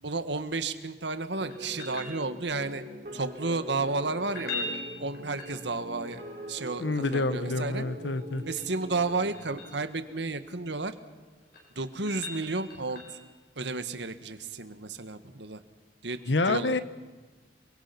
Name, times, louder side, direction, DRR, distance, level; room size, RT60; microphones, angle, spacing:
voice 1, 0.0-2.8 3.1-7.8 8.5-10.9 11.8-13.0 13.6-15.6 16.0-16.8, right 3 dB, 80° right, 10 dB, 1.7 m, -32 dB
sound 1, 1.4-10.6, equal, 55° right, 5.4 m, -43 dB
sound 2, 1.5-2.7 4.2-6.0 8.2-9.8 11.2-13.3 16.1-16.2, left 3 dB, 60° left, 7.9 m, -41 dB
voice 2, 6.8-8.4 16.3-16.8, left 2 dB, 90° left, 13 dB, 1.2 m, -27 dB
29.5 x 23.0 x 6.1 m, 1.4 s
head